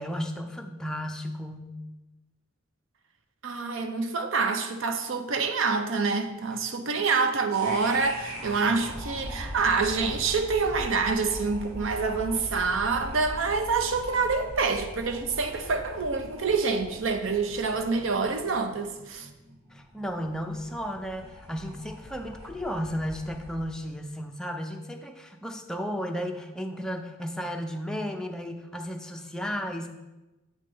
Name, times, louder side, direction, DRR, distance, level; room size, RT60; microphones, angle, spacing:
voice 1, 0.0-1.8 19.7-29.9, equal, 5° left, 0.5 m, -34 dB
voice 2, 3.4-19.3, right 4 dB, 65° right, 0.6 m, -27 dB
sound 1, 7.5-23.7, equal, 90° right, 2.4 m, -41 dB
7.4 x 3.3 x 5.3 m
head